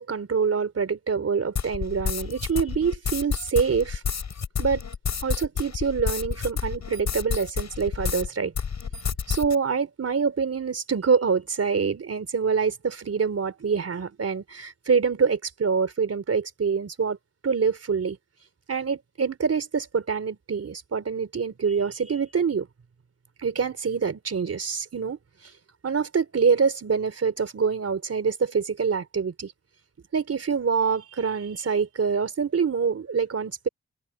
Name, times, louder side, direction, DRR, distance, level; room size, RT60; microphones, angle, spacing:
voice 1, 0.0-4.0 4.6-4.8 5.2-8.5 9.3-17.2 17.4-18.2 18.7-22.7 23.4-25.2 25.8-29.5 30.1-33.7, right 5 dB, 55° right, 3.6 m, -25 dB
sound 1, 1.6-8.3 8.6-9.6, left 6 dB, 70° left, 7.6 m, -30 dB
open air
wide cardioid pair, 90°, 29 cm